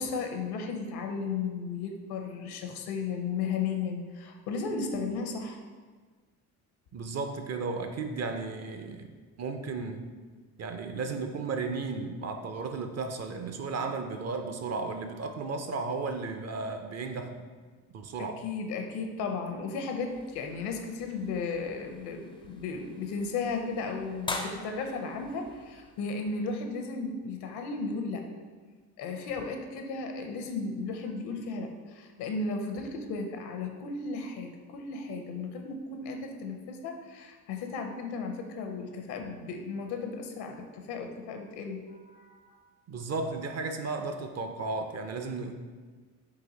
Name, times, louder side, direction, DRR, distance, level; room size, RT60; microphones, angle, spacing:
voice 1, 0.0-5.6 18.2-28.2 29.0-42.6, left 4 dB, 70° left, 4 dB, 0.7 m, -35 dB
voice 2, 6.9-9.1 9.4-10.0 10.6-17.5 17.9-18.4 42.9-45.5, right 4 dB, 40° right, 6 dB, 0.5 m, -34 dB
sound 1, 20.1-26.6, left 2 dB, 15° left, 0.4 m, -43 dB
4.0 x 2.6 x 3.9 m, 1.4 s
supercardioid pair, 65°, 40 cm